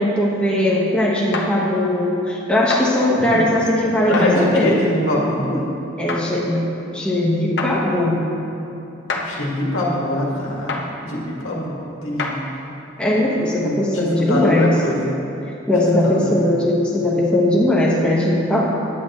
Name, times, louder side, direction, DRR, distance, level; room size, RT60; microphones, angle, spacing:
voice 1, 0.0-4.7 6.0-6.6 6.9-8.2 13.0-14.7 15.7-18.6, left 1 dB, 5° left, -5 dB, 1.1 m, -19 dB
sound 1, 1.3-1.5 2.7-2.9 4.1-4.3 6.1-6.2 7.6-7.7 9.1-9.3 10.7-10.9 12.2-12.4, left 3 dB, 55° left, 0.9 m, -25 dB
voice 2, 4.1-5.7 9.3-12.4 13.6-15.1 16.0-16.2, left 1 dB, 90° left, -3 dB, 1.8 m, -23 dB
9.8 x 8.5 x 4.3 m, 2.9 s
head